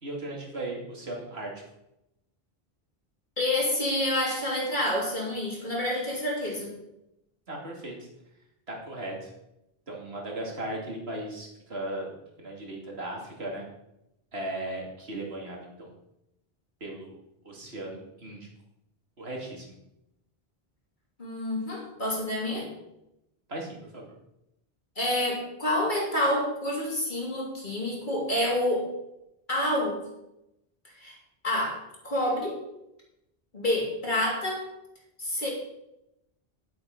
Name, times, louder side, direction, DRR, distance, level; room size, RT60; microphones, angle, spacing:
voice 1, 0.0-1.6 7.5-8.1 8.7-9.3 9.9-13.6 14.3-15.9 16.8-17.2 17.4-18.5 19.2-19.7 23.5-24.1, right 1 dB, 85° right, -1 dB, 2.9 m, -37 dB
voice 2, 3.4-6.7 21.2-22.7 25.0-28.9 29.5-30.0 31.0-31.2 31.4-32.6 33.5-34.6 35.2-35.5, left 1 dB, 50° left, -3 dB, 3.5 m, -28 dB
10.5 x 7.9 x 5.4 m, 0.86 s
omnidirectional pair, 1.0 m